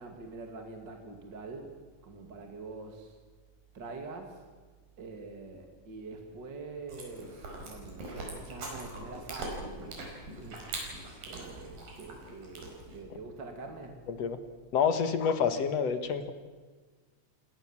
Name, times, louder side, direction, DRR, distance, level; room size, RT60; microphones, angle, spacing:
voice 1, 0.0-1.8 2.0-3.2 3.7-4.5 5.0-14.0, right 3 dB, 35° right, 3 dB, 2.7 m, -45 dB
Chewing mastication, 6.9-13.0, right 2 dB, 80° right, 6.7 m, -42 dB
voice 2, 14.7-16.3, left 6 dB, 55° left, 9 dB, 2.2 m, -28 dB
29.0 x 18.0 x 7.3 m, 1.4 s
omnidirectional pair, 4.0 m